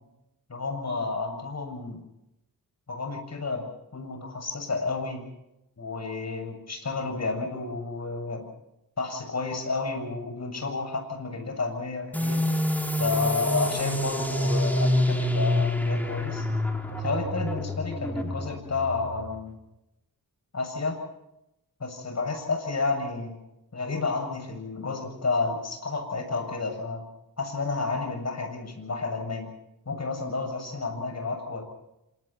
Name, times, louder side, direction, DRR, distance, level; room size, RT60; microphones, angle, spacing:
voice 1, 0.5-2.0 2.9-3.7 3.9-5.2 5.8-8.5 9.0-12.5 13.0-16.5 16.9-19.5 20.5-21.0 21.8-23.3 23.7-27.0 27.4-29.5 29.9-31.6, left 3 dB, 45° left, 5 dB, 7.5 m, -31 dB
sound 1, 12.1-19.4, left 1 dB, 5° left, 4.7 m, -27 dB
28.5 x 27.0 x 4.4 m, 0.89 s
wide cardioid pair, 110°, 36 cm